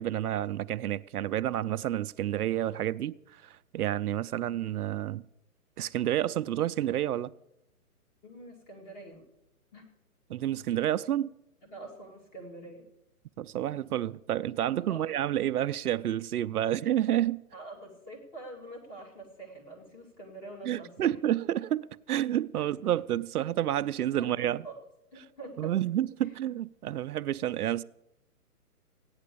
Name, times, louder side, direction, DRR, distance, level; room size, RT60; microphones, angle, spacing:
voice 1, 0.0-5.2 5.8-7.3 10.3-11.3 13.4-17.4 20.7-24.6 25.6-27.8, right 12 dB, 75° right, 0.6 m, -29 dB
voice 2, 8.2-9.3 9.7-9.9 11.6-12.9 14.9-15.1 17.5-21.2 22.5-22.7 23.7-24.8 25.1-25.8 26.2-26.3, right 2 dB, 20° left, 2.2 m, -46 dB
15.0 x 9.7 x 6.8 m
hypercardioid pair, 165°, 45 cm